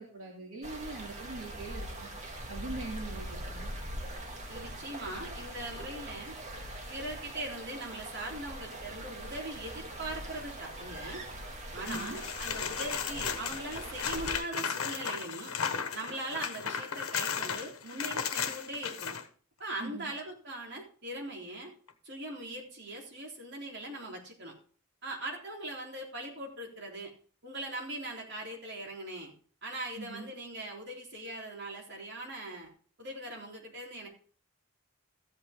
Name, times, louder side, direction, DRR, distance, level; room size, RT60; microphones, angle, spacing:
voice 1, 0.0-3.7 11.9-12.2 19.8-20.1 30.0-30.3, right 3 dB, 70° right, -2 dB, 2.6 m, -42 dB
sound 1, 0.6-14.4, right 1 dB, 35° right, 2.1 m, -42 dB
voice 2, 4.5-6.4 6.9-11.2 11.7-15.5 15.9-19.2 19.6-21.7 22.0-24.5 25.0-27.1 27.4-29.3 29.6-32.7 33.0-34.1, right 1 dB, 50° right, -1 dB, 3.6 m, -40 dB
sound 2, 11.9-19.2 21.9-22.0, left 7 dB, 85° left, 1.1 m, -35 dB
14.5 x 8.6 x 3.6 m, 0.42 s
head